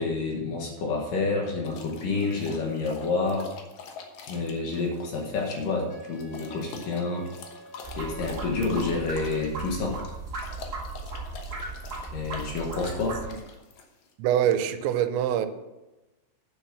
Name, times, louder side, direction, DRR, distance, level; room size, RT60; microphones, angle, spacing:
voice 1, 0.0-3.5 4.3-7.3 8.0-10.0 12.1-13.2, left 3 dB, 60° left, 0 dB, 2.7 m, -29 dB
sound 1, 1.6-14.1, left 5 dB, 80° left, 1.6 m, -45 dB
Wind instrument woodwind instrument, 5.9-10.0, right 1 dB, 40° left, 3.2 m, -47 dB
sound 2, 7.8-13.2, right 3 dB, 60° right, 0.7 m, -37 dB
voice 2, 14.2-15.5, right 10 dB, 90° right, 10 dB, 3.1 m, -24 dB
9.7 x 7.1 x 6.2 m, 1.1 s
omnidirectional pair, 5.1 m